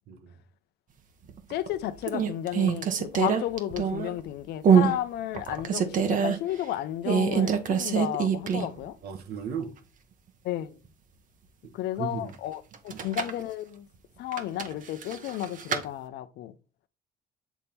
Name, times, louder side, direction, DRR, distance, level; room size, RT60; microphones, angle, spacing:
sound 1, 1.3-1.7 2.1-4.2 4.6-5.0 5.3-6.4 7.0-8.8 9.1-9.2 12.7-13.4 14.3-15.8, right 7 dB, 50° right, 1.0 m, -25 dB
voice 1, 1.5-9.0 10.4-10.8 11.7-13.9 14.2-16.5, left 12 dB, 75° left, 0.6 m, -33 dB
voice 2, 9.0-9.7 12.0-12.3 12.9-13.0, right 6 dB, 70° right, 1.3 m, -35 dB
8.2 x 3.5 x 4.3 m
cardioid pair, 110°, 17 cm